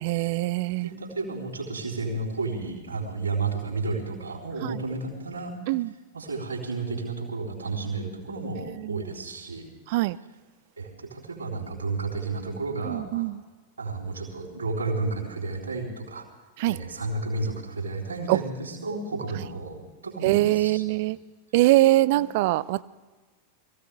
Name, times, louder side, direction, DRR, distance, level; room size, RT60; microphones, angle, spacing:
voice 1, 0.0-0.9 5.7-5.9 8.8-9.0 9.9-10.2 12.9-13.4 16.6-16.8 18.3-18.4 20.2-21.2 21.5-22.8, right 18 dB, 50° right, 19 dB, 0.4 m, -22 dB
voice 2, 0.8-5.6 6.1-9.7 10.8-13.3 13.8-16.2 16.7-20.9 22.0-22.2, right 3 dB, 75° right, -3 dB, 3.8 m, -32 dB
22.5 x 16.0 x 3.5 m, 1.3 s
figure-of-eight pair, 90°, 0 cm